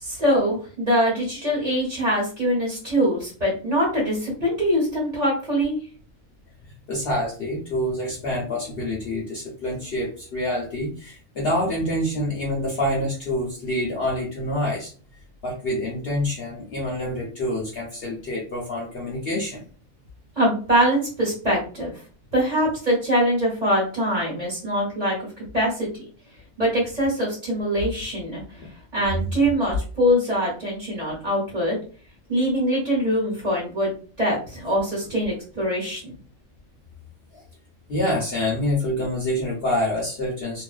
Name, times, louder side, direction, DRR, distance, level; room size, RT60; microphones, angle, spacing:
voice 1, 0.0-5.8 20.4-21.9 22.3-25.9 26.6-28.4 28.9-31.8 32.3-36.1, equal, 35° right, -4 dB, 1.0 m, -23 dB
voice 2, 6.9-14.9 15.4-19.6 37.3-37.4 37.9-40.6, left 1 dB, 55° left, -3 dB, 0.7 m, -26 dB
2.5 x 2.1 x 2.4 m, 0.39 s
omnidirectional pair, 1.4 m